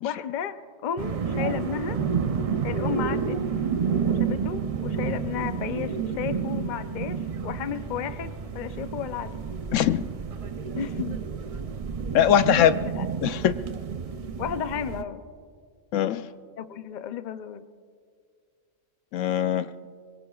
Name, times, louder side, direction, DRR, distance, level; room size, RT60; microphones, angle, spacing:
voice 1, 0.0-2.0 2.6-3.4 4.1-9.4 10.8-11.2 12.6-13.0 14.4-15.2 16.6-17.6, left 8 dB, 50° left, 10 dB, 0.6 m, -33 dB
sound 1, 1.0-15.0, right 6 dB, 55° right, 0.4 m, -30 dB
voice 2, 9.7-10.0 12.1-12.7 13.2-13.6 15.9-16.3 19.1-19.7, left 10 dB, 75° left, 12 dB, 0.9 m, -21 dB
24.0 x 22.5 x 2.3 m, 2.1 s
omnidirectional pair, 1.3 m